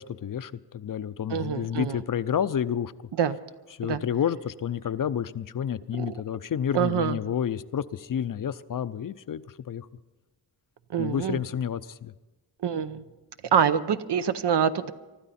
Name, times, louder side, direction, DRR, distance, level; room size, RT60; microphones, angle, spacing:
voice 1, 0.0-2.9 3.8-9.4 9.7-9.9 11.0-12.1, left 8 dB, 50° left, 0.5 m, -30 dB
voice 2, 1.3-2.0 3.2-3.4 3.8-4.0 6.0-6.1 6.7-7.2 10.9-11.4 12.6-13.0 13.5-14.9, right 8 dB, 75° right, 0.8 m, -25 dB
24.5 x 12.5 x 4.2 m
wide cardioid pair, 90°, 41 cm